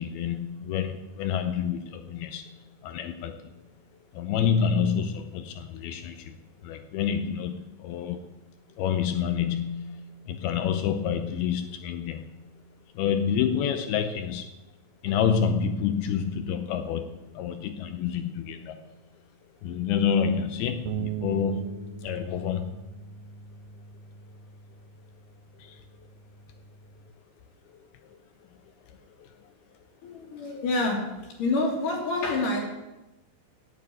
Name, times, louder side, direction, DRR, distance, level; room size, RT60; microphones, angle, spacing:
voice 1, 0.0-2.5 2.8-3.4 4.1-6.3 6.6-8.3 8.8-12.3 13.0-14.5 15.0-18.8 19.6-22.8 25.6-25.8 29.2-29.3, left 7 dB, 90° left, 8 dB, 2.2 m, -28 dB
sound 1, 20.9-27.1, right 8 dB, 90° right, 3.2 m, -40 dB
voice 2, 30.0-31.1 31.4-32.6, left 2 dB, 50° left, -6 dB, 3.5 m, -27 dB
13.0 x 9.1 x 8.9 m, 1.0 s
omnidirectional pair, 5.4 m